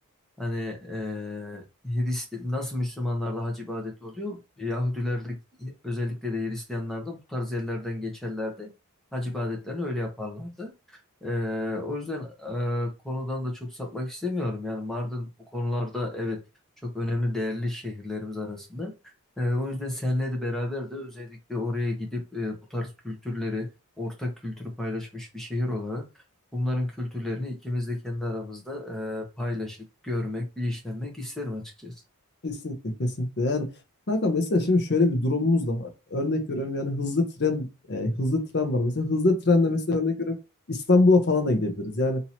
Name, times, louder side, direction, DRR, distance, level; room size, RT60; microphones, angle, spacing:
voice 1, 0.4-8.7 9.1-16.4 16.8-18.9 19.4-23.7 24.0-26.2 26.5-31.9, left 2 dB, ahead, 0.9 m, -31 dB
voice 2, 32.4-33.7 34.1-40.4 40.7-42.2, left 2 dB, 50° left, 0.8 m, -24 dB
3.0 x 2.7 x 4.2 m
head